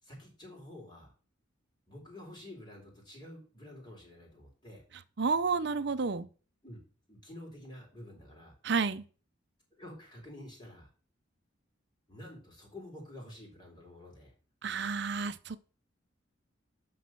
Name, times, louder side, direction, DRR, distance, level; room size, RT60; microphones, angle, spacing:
voice 1, 0.0-1.1 1.9-4.9 6.6-6.8 7.1-8.5 9.8-10.9 12.1-14.3, left 1 dB, 20° left, 3.8 m, -49 dB
voice 2, 5.2-6.3 8.6-9.0 14.6-15.6, right 4 dB, 60° right, 0.6 m, -30 dB
12.5 x 4.1 x 5.8 m
head